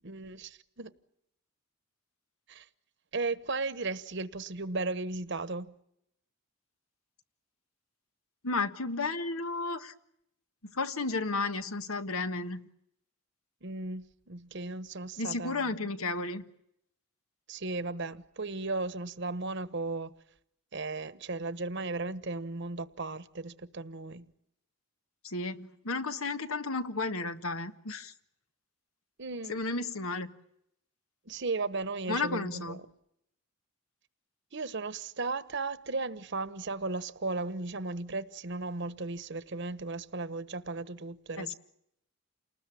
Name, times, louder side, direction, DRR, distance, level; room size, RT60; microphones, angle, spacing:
voice 1, 0.0-0.9 2.5-2.7 3.1-5.7 13.6-15.9 17.5-20.1 20.7-24.3 29.2-29.6 31.3-32.9 34.5-41.5, right 3 dB, 55° right, 1.1 m, -36 dB
voice 2, 8.4-9.9 10.7-12.6 15.2-16.4 25.2-28.1 29.5-30.4 32.1-32.8 41.4-41.5, left 3 dB, 85° left, 1.5 m, -33 dB
29.0 x 20.0 x 8.5 m
head